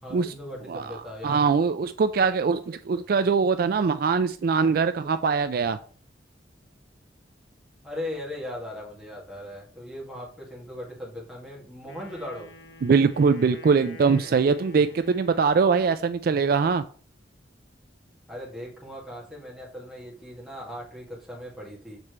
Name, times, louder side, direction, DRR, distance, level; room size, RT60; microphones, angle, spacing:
voice 1, 0.0-1.5 7.8-12.5 18.3-22.0, left 1 dB, ahead, -4 dB, 2.1 m, -38 dB
voice 2, 1.2-5.8 12.8-16.8, right 5 dB, 55° right, 11 dB, 0.3 m, -22 dB
Wind instrument woodwind instrument, 11.8-15.8, left 1 dB, 85° left, 1.5 m, -48 dB
6.8 x 4.3 x 4.6 m, 0.42 s
head